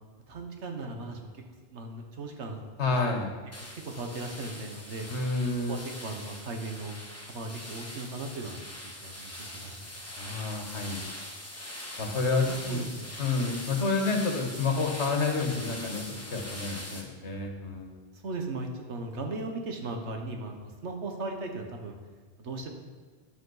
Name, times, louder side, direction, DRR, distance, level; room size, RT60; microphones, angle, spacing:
voice 1, 0.3-1.4 1.7-2.6 3.7-5.1 5.5-6.9 7.3-9.9 12.3-13.1 18.2-22.0 22.4-22.7, right 2 dB, 85° right, 3 dB, 1.5 m, -37 dB
voice 2, 2.8-3.3 5.1-5.8 10.2-11.0 12.0-12.9 13.2-16.0 16.3-17.9, left 3 dB, 90° left, 3 dB, 1.6 m, -29 dB
sound 1, 3.5-17.0, left 1 dB, 15° left, 1.3 m, -42 dB
11.0 x 8.0 x 4.0 m, 1.4 s
omnidirectional pair, 1.1 m